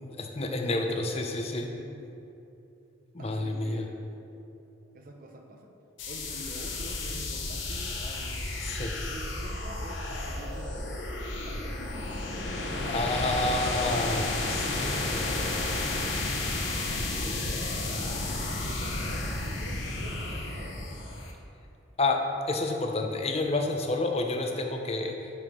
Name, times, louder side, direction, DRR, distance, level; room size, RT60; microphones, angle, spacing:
voice 1, 0.1-1.7 3.1-3.9 8.0-8.1 8.6-8.9 12.9-15.7 22.0-25.4, left 2 dB, 30° left, 3 dB, 0.6 m, -30 dB
voice 2, 3.2-4.0 4.9-5.7 6.1-11.8 16.3-16.8 17.2-20.9, right 1 dB, 45° right, 3 dB, 0.7 m, -46 dB
sound 1, 6.0-21.3, left 2 dB, 70° left, 0.9 m, -32 dB
6.2 x 6.2 x 5.2 m, 2.8 s
head